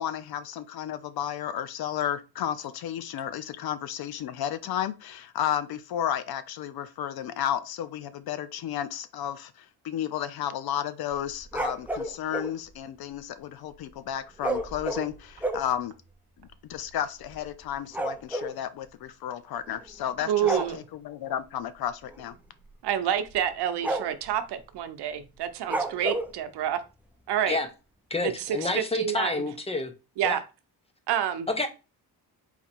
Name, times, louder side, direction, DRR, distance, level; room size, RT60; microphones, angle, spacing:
voice 1, 0.0-15.9 16.7-22.3, left 10 dB, 65° left, 0.6 m, -32 dB
sound 1, 11.1-12.5 14.4-15.7 16.4-16.5 16.7-16.9 17.2-18.6 19.7-20.0 20.4-20.7 22.1-22.3 22.7-22.8 23.3-23.5 23.8-24.3 25.7-26.3, right 1 dB, 5° right, 0.4 m, -31 dB
voice 2, 20.3-20.8 22.8-26.8 27.3-27.6 28.2-29.5 30.2-30.4 31.1-31.5, right 10 dB, 75° right, 0.8 m, -28 dB
voice 3, 28.1-29.9 30.2-30.4 31.5-31.7, left 3 dB, 15° left, 0.8 m, -29 dB
4.1 x 2.8 x 4.3 m
cardioid pair, 125°, 40 cm